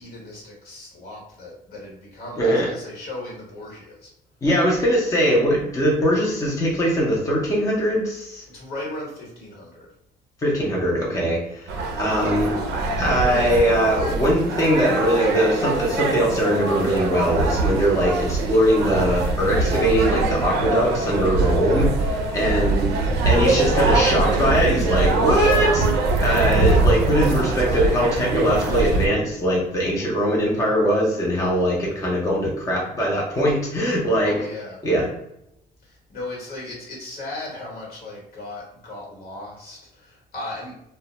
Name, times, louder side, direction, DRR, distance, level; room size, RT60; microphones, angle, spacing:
voice 1, 0.0-4.1 8.5-9.9 22.3-22.8 34.2-34.8 35.8-40.7, left 2 dB, 65° left, -2 dB, 1.1 m, -36 dB
voice 2, 2.4-2.7 4.4-8.4 10.4-11.7 12.0-12.5 13.0-22.9 23.2-25.9 26.2-34.3 34.8-35.1, equal, 20° left, -3 dB, 0.5 m, -21 dB
sound 1, 11.7-29.1, right 3 dB, 80° right, 0.4 m, -22 dB
2.1 x 2.1 x 2.8 m, 0.79 s
cardioid pair, 110°, 17 cm